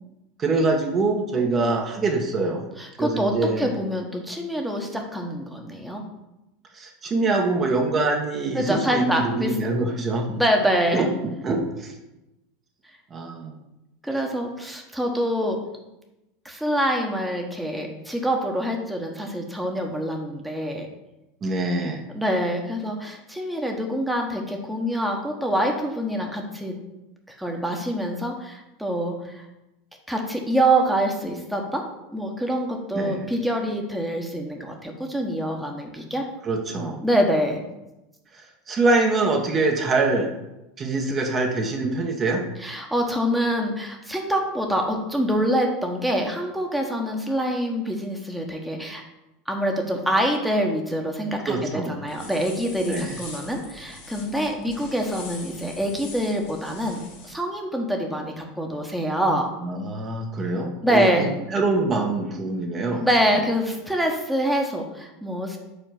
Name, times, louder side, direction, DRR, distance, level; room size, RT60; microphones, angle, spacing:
voice 1, 0.4-2.7 3.0-3.8 6.7-10.4 10.9-11.9 13.1-13.5 21.4-22.0 32.9-33.3 36.4-37.0 38.3-40.3 40.8-42.5 51.5-52.0 52.8-53.2 59.6-63.1, right 3 dB, 30° right, 2 dB, 1.1 m, -24 dB
voice 2, 2.8-6.0 8.5-9.6 10.3-11.1 14.0-15.6 16.4-20.9 22.1-26.8 27.3-29.4 30.1-36.2 37.0-37.6 42.6-49.0 49.5-59.5 60.8-61.3 63.0-65.6, equal, 5° right, 1 dB, 1.2 m, -25 dB
sound 1, 52.1-57.3, left 3 dB, 60° left, 2.2 m, -42 dB
5.1 x 4.4 x 5.8 m, 0.95 s
figure-of-eight pair, 80°, 0 cm